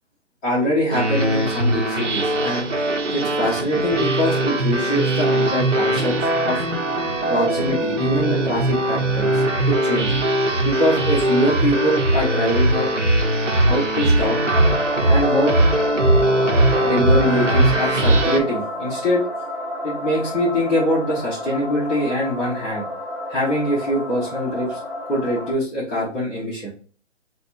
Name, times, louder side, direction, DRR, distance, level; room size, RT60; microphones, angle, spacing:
voice 1, 0.4-2.7 3.1-6.1 6.4-6.6 7.3-10.1 10.6-12.9 13.7-14.4 15.1-15.5 16.8-19.2 19.8-22.8 23.3-24.8 25.1-26.7, equal, 5° left, -11 dB, 0.6 m, -23 dB
sound 1, 0.9-18.4, right 1 dB, 80° right, 1.2 m, -20 dB
sound 2, 14.5-25.5, left 1 dB, 25° left, 1.3 m, -30 dB
4.0 x 2.5 x 4.3 m, 0.41 s
hypercardioid pair, 160°, 37 cm